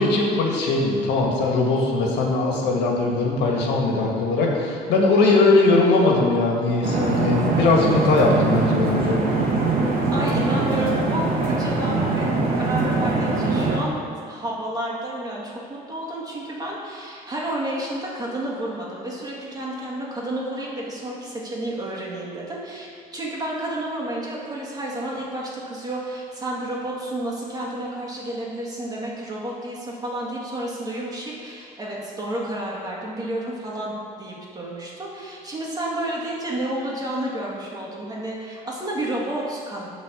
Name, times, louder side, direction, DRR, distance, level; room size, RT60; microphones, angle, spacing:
voice 1, 0.0-9.2, left 3 dB, 85° left, -1 dB, 1.6 m, -20 dB
sound 1, 6.8-13.8, right 3 dB, 65° right, 1.6 m, -22 dB
voice 2, 10.1-14.0 14.3-39.9, right 1 dB, 20° right, -4 dB, 2.0 m, -30 dB
9.7 x 4.1 x 7.0 m, 2.3 s
cardioid pair, 110°, 17 cm